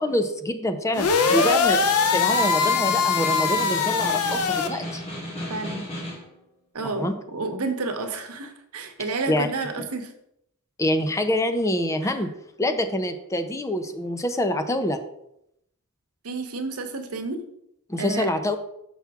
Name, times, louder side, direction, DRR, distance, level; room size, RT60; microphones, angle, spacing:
voice 1, 0.0-1.9 2.1-5.0 6.8-7.1 9.3-9.5 10.8-12.3 12.6-15.0 17.9-18.6, left 1 dB, 15° left, 8 dB, 0.4 m, -25 dB
sound 1, 0.9-4.7, left 5 dB, 85° left, 0.6 m, -22 dB
voice 2, 1.2-1.6 5.5-5.8 6.7-10.1 12.0-12.1 16.2-17.4 18.0-18.3, right 3 dB, 80° right, 6 dB, 0.9 m, -30 dB
Snare drum, 1.8-6.3, equal, 30° left, 2.1 m, -35 dB
6.0 x 5.8 x 3.5 m, 0.78 s
head